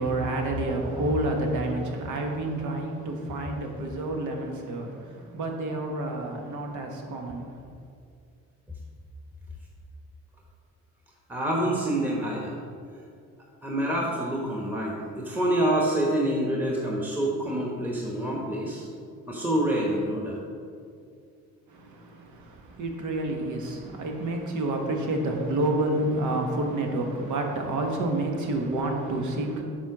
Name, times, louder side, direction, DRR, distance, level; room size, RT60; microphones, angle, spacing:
voice 1, 0.0-7.6 21.7-29.6, right 2 dB, 75° right, 2 dB, 1.3 m, -29 dB
voice 2, 11.3-12.5 13.6-18.9 19.3-20.4, right 1 dB, 5° right, -3 dB, 1.1 m, -27 dB
7.4 x 4.4 x 5.9 m, 2.3 s
cardioid pair, 90°, 30 cm